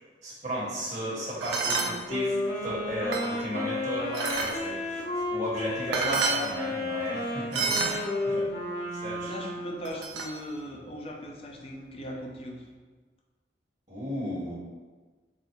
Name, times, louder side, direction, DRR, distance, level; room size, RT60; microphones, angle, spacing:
voice 1, 0.2-8.5 8.9-9.3 13.9-14.5, equal, 40° right, -7 dB, 1.2 m, -34 dB
sound 1, 1.4-1.9 2.7-3.5 4.1-4.5 5.6-5.7 5.9-6.4 7.5-8.0 9.8-10.3, right 4 dB, 85° right, 0.5 m, -29 dB
Wind instrument woodwind instrument, 1.6-9.9, left 2 dB, 60° left, 0.9 m, -32 dB
voice 2, 7.7-8.0 9.3-12.6, equal, 35° left, 0 dB, 0.5 m, -39 dB
4.0 x 2.0 x 4.4 m, 1.4 s
head